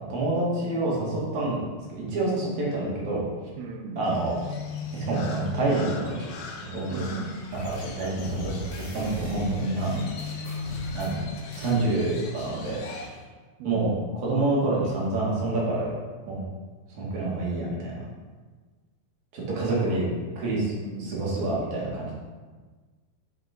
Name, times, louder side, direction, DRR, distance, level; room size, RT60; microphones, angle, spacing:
voice 1, 0.1-1.6 1.9-3.2 3.9-4.4 5.1-6.3 6.7-7.1 7.5-9.9 10.9-12.8 13.6-15.9 16.3-16.4 16.9-18.0 19.3-20.1 20.4-20.7 21.0-22.1, right 2 dB, 55° right, -5 dB, 3.0 m, -27 dB
voice 2, 3.6-4.1 6.9-7.4 9.9-10.2 13.6-14.0 19.5-20.1 20.7-21.2, right 4 dB, 85° right, 4 dB, 2.7 m, -36 dB
Crow, 4.0-13.1, left 4 dB, 75° left, 2.6 m, -38 dB
sound 1, 7.5-8.0 8.2-11.2 11.5-11.8, equal, 15° left, 1.2 m, -39 dB
8.0 x 5.1 x 5.2 m, 1.4 s
omnidirectional pair, 4.4 m